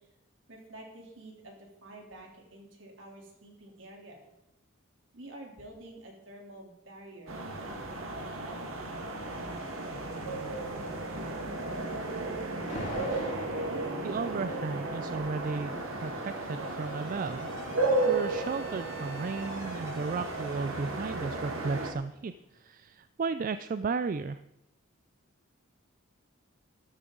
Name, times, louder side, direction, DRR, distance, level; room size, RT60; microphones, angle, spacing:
voice 1, 0.5-4.3 5.1-9.2, right 1 dB, 65° right, -1 dB, 3.3 m, -49 dB
sound 1, 7.3-21.9, right 2 dB, 80° right, 1.7 m, -34 dB
Alarm, 12.7-13.7 14.9-22.6, left 1 dB, 35° left, 3.1 m, -47 dB
voice 2, 14.0-15.7 16.0-17.7 18.0-24.4, right 4 dB, 40° right, 12 dB, 0.3 m, -34 dB
13.0 x 13.0 x 3.9 m, 0.91 s
head